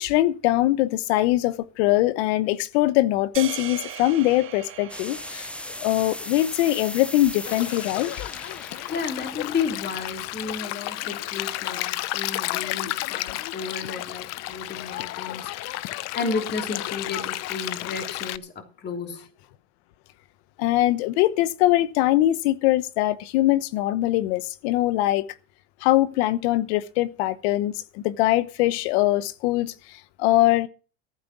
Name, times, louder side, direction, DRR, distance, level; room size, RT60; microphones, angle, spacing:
voice 1, 0.0-5.5 5.8-8.1 20.6-25.3 25.8-30.7, left 16 dB, 75° left, 1.0 m, -22 dB
sound 1, 3.3-7.7, right 10 dB, 40° right, 1.5 m, -40 dB
sound 2, 4.9-10.6, left 1 dB, 5° left, 0.8 m, -38 dB
Stream, 7.4-18.4, left 17 dB, 55° left, 0.7 m, -32 dB
voice 2, 8.9-15.5 16.1-19.3, left 5 dB, 30° left, 3.2 m, -32 dB
14.5 x 9.2 x 6.1 m
supercardioid pair, 110°, 32 cm